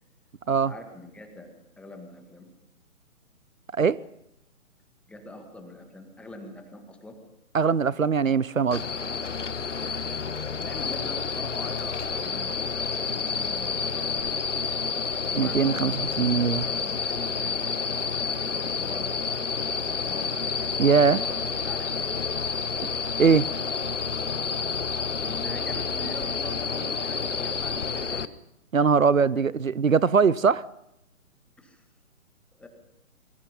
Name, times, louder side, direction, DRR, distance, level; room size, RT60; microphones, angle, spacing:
voice 1, 0.5-2.5 5.1-7.2 10.6-14.7 15.2-19.2 19.6-20.4 20.8-22.1 25.2-28.3 28.9-29.4 31.6-31.8 32.5-32.7, left 1 dB, 5° left, 1.8 m, -44 dB
voice 2, 7.5-8.8 15.3-16.7 20.8-21.2 23.2-23.5 28.7-30.6, right 5 dB, 70° right, 0.8 m, -21 dB
sound 1, 8.7-28.3, left 5 dB, 60° left, 1.3 m, -29 dB
27.0 x 24.0 x 5.5 m
figure-of-eight pair, 135°, 42 cm